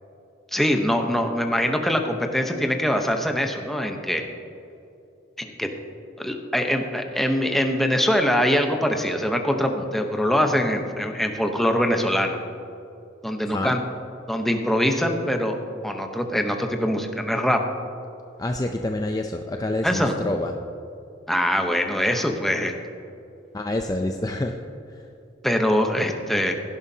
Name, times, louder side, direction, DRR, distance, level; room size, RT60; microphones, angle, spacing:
voice 1, 0.5-4.2 5.4-5.7 6.2-12.4 13.2-13.8 14.3-15.6 15.8-17.6 19.8-20.1 21.3-22.7 25.4-26.5, equal, ahead, 3 dB, 0.9 m, -23 dB
voice 2, 18.4-20.5 23.5-24.6 24.9-25.1, left 2 dB, 20° left, 4 dB, 0.5 m, -27 dB
16.5 x 11.5 x 2.8 m, 2.7 s
head